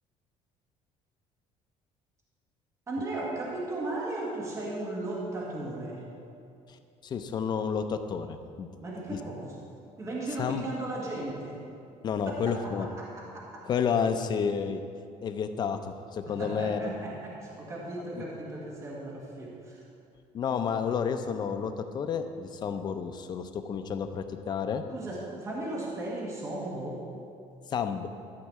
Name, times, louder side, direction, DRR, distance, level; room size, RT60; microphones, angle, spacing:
voice 1, 2.9-6.1 8.8-9.5 10.0-11.6 12.2-13.7 16.2-19.8 24.9-27.1, right 2 dB, 25° right, -3 dB, 1.5 m, -36 dB
voice 2, 7.0-8.7 9.1-9.2 10.4-10.7 12.0-12.9 13.7-14.8 15.2-16.9 18.2-18.3 20.3-24.8 27.7-28.1, left 6 dB, 35° left, 8 dB, 0.6 m, -30 dB
12.5 x 4.7 x 7.4 m, 2.4 s
cardioid pair, 155°, 13 cm